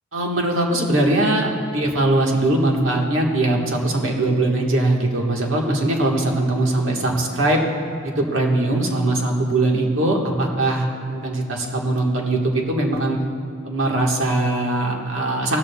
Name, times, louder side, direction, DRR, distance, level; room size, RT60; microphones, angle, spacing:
voice 1, 0.1-7.6 8.0-13.2 13.6-15.6, right 2 dB, 65° right, 0 dB, 1.5 m, -21 dB
16.0 x 14.0 x 2.3 m, 2.2 s
head